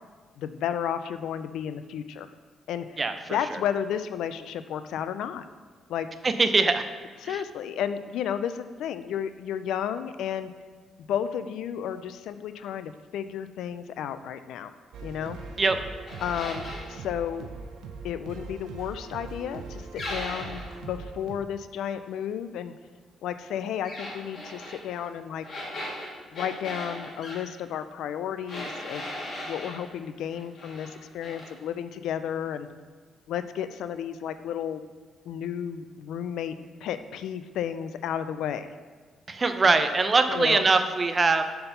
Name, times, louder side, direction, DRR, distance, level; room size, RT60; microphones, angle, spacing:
voice 1, 0.4-2.3 2.7-3.0 3.3-5.5 5.9-6.1 7.2-10.5 11.1-14.7 15.0-15.4 16.2-17.5 18.0-22.7 23.2-25.5 26.3-29.1 29.5-32.7 33.3-34.8 35.3-38.7 40.3-40.6, left 9 dB, 80° left, 11 dB, 0.3 m, -32 dB
voice 2, 3.0-3.4 6.2-6.8 7.2-7.4 15.6-15.8 39.3-41.4, right 3 dB, 30° right, 9 dB, 0.5 m, -22 dB
sound 1, 14.9-21.4, right 4 dB, 85° right, 0.6 m, -41 dB
sound 2, 16.1-16.9 20.0-20.8 23.8-24.8 25.4-27.4 28.5-29.8 30.3-30.9 31.2-31.5, left 1 dB, 45° left, 1.9 m, -37 dB
5.3 x 4.4 x 5.5 m, 1.5 s
cardioid pair, 90°, 0 cm